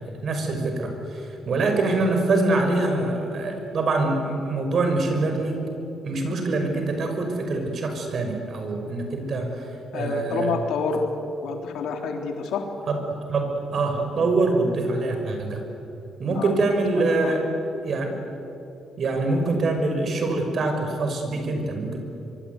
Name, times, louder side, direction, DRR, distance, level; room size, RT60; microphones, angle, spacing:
voice 1, 0.2-5.7 6.0-10.5 12.9-13.0 13.3-15.6 16.2-17.4 17.8-18.1 19.0-22.0, right 2 dB, 55° right, 4 dB, 6.0 m, -24 dB
voice 2, 9.9-11.1 11.4-12.6 16.3-16.5 17.2-17.4, left 5 dB, 80° left, 4 dB, 3.5 m, -28 dB
24.5 x 24.0 x 9.7 m, 2.9 s
cardioid pair, 90°, 0 cm